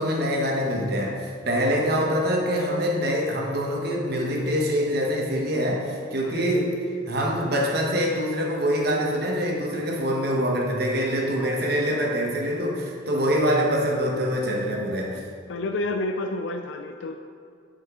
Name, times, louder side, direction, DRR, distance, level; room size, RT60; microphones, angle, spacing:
voice 1, 0.0-6.7 7.1-15.2, equal, 60° right, -1 dB, 1.2 m, -25 dB
voice 2, 11.4-11.8 13.1-13.4 15.1-15.2 15.5-17.2, left 2 dB, 85° left, 5 dB, 0.4 m, -31 dB
9.4 x 5.2 x 3.7 m, 2.2 s
head